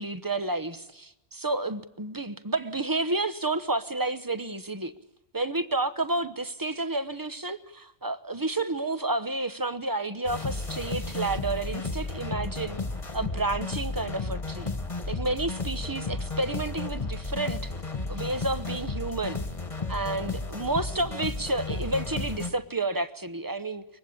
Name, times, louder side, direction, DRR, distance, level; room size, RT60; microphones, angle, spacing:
voice 1, 0.0-4.9 5.3-12.8 13.1-14.7 15.1-17.7 18.1-19.4 19.9-23.8, right 2 dB, 20° right, 1.0 m, -30 dB
sound 1, 10.3-22.5, left 3 dB, 35° left, 1.7 m, -33 dB
23.5 x 21.0 x 8.6 m
omnidirectional pair, 1.1 m